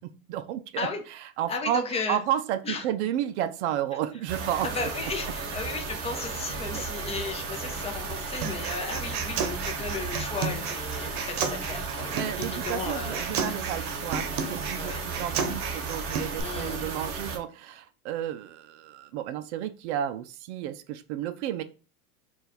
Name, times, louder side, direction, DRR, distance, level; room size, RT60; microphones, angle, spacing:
voice 1, 0.0-4.9 6.7-6.9 11.9-21.6, right 11 dB, 55° right, 0.5 m, -32 dB
voice 2, 1.5-2.2 2.6-2.8 4.6-13.2 14.8-15.0 16.4-16.8, left 4 dB, 15° left, 0.6 m, -34 dB
sound 1, 4.3-17.4, right 4 dB, 30° right, 0.9 m, -34 dB
Human voice, 8.4-16.4, right 5 dB, 75° right, 0.9 m, -33 dB
4.0 x 2.4 x 4.1 m
supercardioid pair, 125°, 43 cm